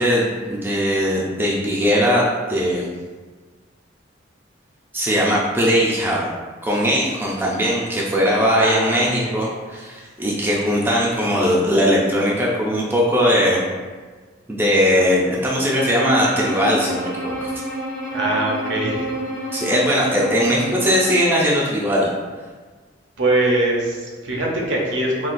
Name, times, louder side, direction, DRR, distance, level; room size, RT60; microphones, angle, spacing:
voice 1, 0.0-2.2 2.5-2.9 4.9-6.3 6.6-13.6 14.5-17.5 19.5-22.1, equal, 10° right, -5 dB, 0.3 m, -19 dB
voice 2, 8.6-9.4 18.1-19.1 23.2-25.3, right 1 dB, 70° right, -1 dB, 0.6 m, -22 dB
Bowed string instrument, 15.9-21.3, right 1 dB, 60° left, 0.9 m, -29 dB
3.8 x 2.3 x 2.5 m, 1.4 s
head